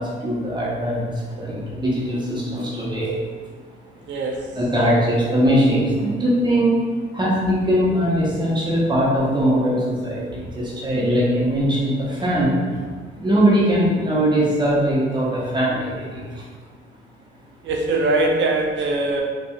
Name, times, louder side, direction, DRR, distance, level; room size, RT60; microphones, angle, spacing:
voice 1, 0.0-3.2 4.2-6.8 7.1-12.8 13.2-16.4, equal, 20° right, -7 dB, 1.0 m, -21 dB
voice 2, 4.1-4.4 17.6-19.2, right 2 dB, 70° right, 1 dB, 0.6 m, -21 dB
4.2 x 2.6 x 2.4 m, 1.5 s
cardioid pair, 90°, 20 cm